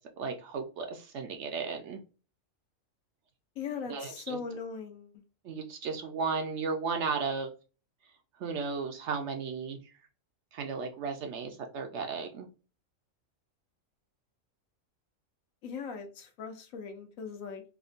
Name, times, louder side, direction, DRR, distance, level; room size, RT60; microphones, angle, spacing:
voice 1, 0.2-2.0 3.9-4.4 5.4-7.5 8.4-9.8 10.5-12.5, right 5 dB, 70° right, 4 dB, 0.8 m, -34 dB
voice 2, 3.6-5.1 15.6-17.6, left 5 dB, 80° left, 5 dB, 1.1 m, -39 dB
3.6 x 2.1 x 2.4 m, 0.34 s
omnidirectional pair, 1.4 m